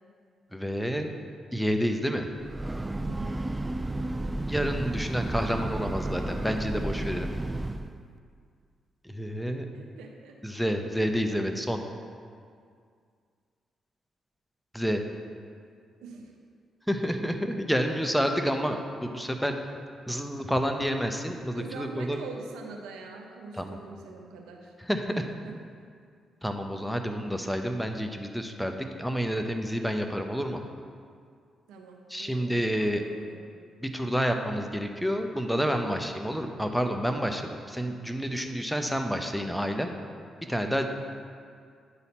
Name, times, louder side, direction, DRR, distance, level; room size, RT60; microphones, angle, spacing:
voice 1, 0.5-1.1 1.5-2.3 4.5-7.3 9.0-9.7 10.4-11.8 14.7-15.0 16.9-19.5 20.1-22.2 23.6-23.8 24.9-25.2 26.4-30.6 32.1-33.0 33.8-39.9 40.5-40.8, equal, 5° left, 5 dB, 0.8 m, -29 dB
Breathing / Train, 2.3-8.0, right 2 dB, 20° right, 0.3 m, -32 dB
voice 2, 3.0-3.4 9.7-10.3 16.0-16.3 21.5-24.7 25.1-25.5 31.7-33.4, right 4 dB, 80° right, 1 dB, 0.8 m, -44 dB
9.7 x 4.1 x 4.3 m, 2.2 s
hypercardioid pair, 45°, 0 cm